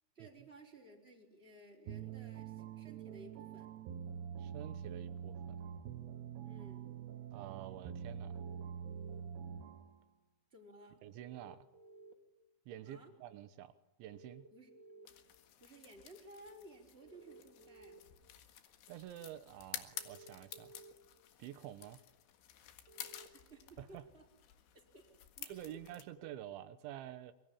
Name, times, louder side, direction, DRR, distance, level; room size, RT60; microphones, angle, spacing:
voice 1, 0.1-3.7 6.4-6.9 10.5-11.0 12.8-13.1 14.5-15.1 15.6-18.0 23.1-24.2 24.9-25.0 25.4-25.8, right 1 dB, 15° right, 1 dB, 4.7 m, -57 dB
sound 1, 1.9-10.0, right 8 dB, 70° right, 3.1 m, -45 dB
voice 2, 4.4-5.6 7.3-8.4 11.0-11.7 12.7-13.7 14.0-14.5 18.9-20.8 21.4-22.0 23.8-24.1 25.5-27.3, right 12 dB, 90° right, 11 dB, 3.6 m, -49 dB
sound 2, 8.2-9.2 11.1-12.1 14.1-15.1 17.0-18.0 19.9-20.9 22.9-23.3, right 3 dB, 30° right, 2.8 m, -57 dB
sound 3, 15.1-26.0, left 11 dB, 80° left, 4.1 m, -52 dB
26.5 x 24.0 x 8.9 m, 1.0 s
omnidirectional pair, 5.2 m